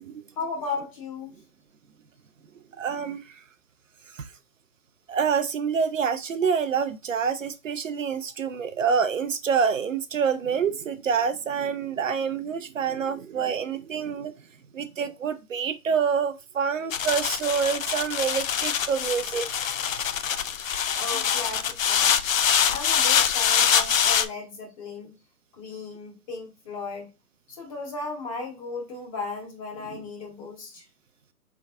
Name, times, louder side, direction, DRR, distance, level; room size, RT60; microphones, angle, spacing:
voice 1, 0.4-1.3 20.9-22.2 22.7-25.1 25.5-27.1 27.5-30.8, left 3 dB, 20° left, 1.1 m, -35 dB
voice 2, 2.8-3.4 4.1-4.3 5.1-14.3 14.7-19.5 29.9-30.0, right 6 dB, 55° right, 0.5 m, -27 dB
sound 1, 16.9-24.3, left 8 dB, 60° left, 0.6 m, -24 dB
3.7 x 3.4 x 3.5 m
hypercardioid pair, 150°, 46 cm